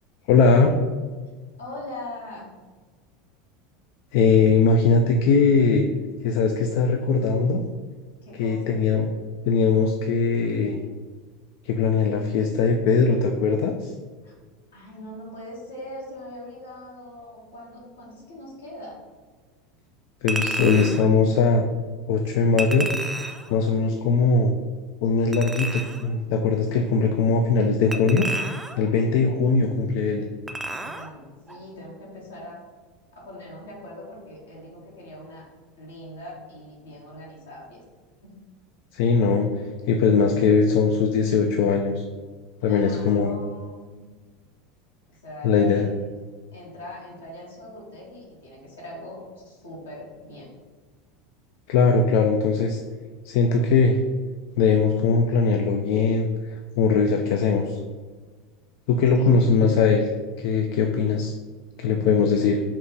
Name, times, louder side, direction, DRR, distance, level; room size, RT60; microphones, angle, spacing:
voice 1, 0.3-0.8 4.1-5.8 6.2-7.6 8.3-9.1 9.4-10.8 11.6-13.9 20.2-21.6 22.1-22.9 23.5-24.5 25.0-28.3 28.8-30.3 38.9-39.5 39.9-42.0 42.6-43.3 45.4-45.9 51.7-52.8 53.3-54.0 54.6-57.8 58.9-60.1 60.4-61.3 61.8-62.6, left 4 dB, 60° left, 4 dB, 0.3 m, -20 dB
voice 2, 1.6-2.5 8.2-8.7 14.2-14.3 14.7-19.0 23.4-23.9 28.9-29.5 30.8-32.6 33.1-35.5 35.8-37.8 38.2-38.4 42.6-44.0 45.2-46.1 46.5-50.5 59.1-59.3, left 1 dB, 75° left, -4 dB, 1.3 m, -41 dB
Chink clink, 20.3-21.1 22.6-23.5 25.3-26.1 27.9-28.9 30.5-31.1 31.5-31.6, right 2 dB, 10° right, 0.4 m, -31 dB
4.4 x 2.8 x 3.9 m, 1.4 s
figure-of-eight pair, 80°, 0 cm